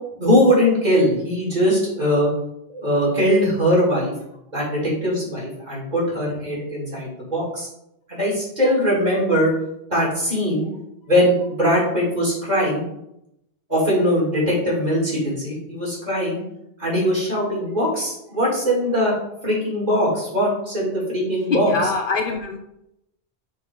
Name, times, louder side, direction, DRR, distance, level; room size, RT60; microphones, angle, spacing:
voice 1, 0.2-2.3 2.7-4.1 4.5-7.7 8.1-9.5 9.9-10.7 11.1-12.8 13.7-16.4 16.8-19.1 19.4-21.7, equal, 40° right, -5 dB, 3.1 m, -21 dB
voice 2, 21.5-22.6, left 3 dB, 55° left, 3 dB, 0.8 m, -23 dB
6.9 x 4.0 x 5.2 m, 0.82 s
omnidirectional pair, 1.1 m